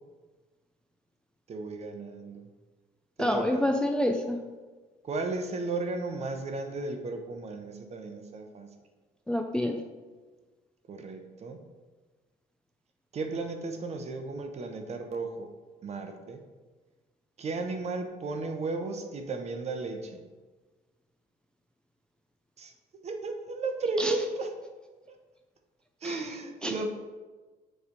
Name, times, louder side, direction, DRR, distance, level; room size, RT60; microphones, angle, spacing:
voice 1, 1.5-2.5 3.2-3.6 5.0-8.7 10.9-11.6 13.1-15.5 15.8-16.4 17.4-20.2 22.6-22.7 23.0-24.5 25.1-25.2 26.0-26.9, right 3 dB, 40° right, 5 dB, 0.9 m, -34 dB
voice 2, 3.2-4.4 9.3-9.8 24.0-24.1 26.0-26.2 26.6-26.7, left 1 dB, 5° left, 3 dB, 0.4 m, -27 dB
6.9 x 3.4 x 5.2 m, 1.3 s
cardioid pair, 110°, 17 cm